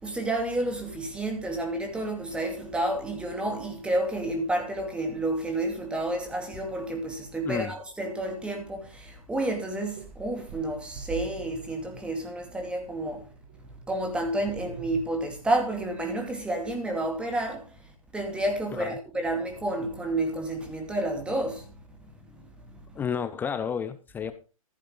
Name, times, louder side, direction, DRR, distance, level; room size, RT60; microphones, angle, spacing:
voice 1, 0.0-13.3 13.9-17.7 18.1-21.7 22.3-22.8, right 1 dB, 5° right, 2.4 m, -30 dB
sound 1, 8.9-9.0 9.5-15.1, right 6 dB, 40° right, 2.0 m, -44 dB
voice 2, 22.9-24.3, left 7 dB, 10° left, 0.6 m, -31 dB
15.0 x 8.4 x 3.8 m
figure-of-eight pair, 130°, 18 cm